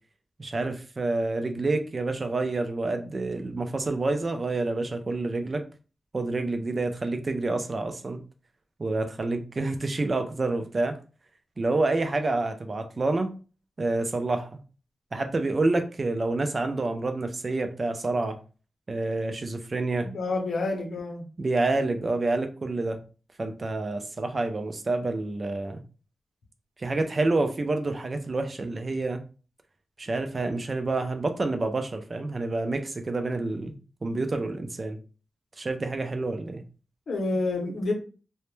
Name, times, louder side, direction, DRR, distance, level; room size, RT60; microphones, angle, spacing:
voice 1, 0.4-5.7 6.1-8.2 8.8-11.0 11.6-13.4 13.8-14.6 15.1-18.4 18.9-20.1 21.4-23.0 23.4-25.8 26.8-29.2 30.0-33.8 34.0-35.0 35.6-36.6, right 2 dB, 40° right, 7 dB, 0.3 m, -28 dB
voice 2, 20.0-21.2 37.1-37.9, left 2 dB, 85° left, 1 dB, 0.6 m, -28 dB
2.1 x 2.1 x 3.0 m, 0.36 s
wide cardioid pair, 95°, 0 cm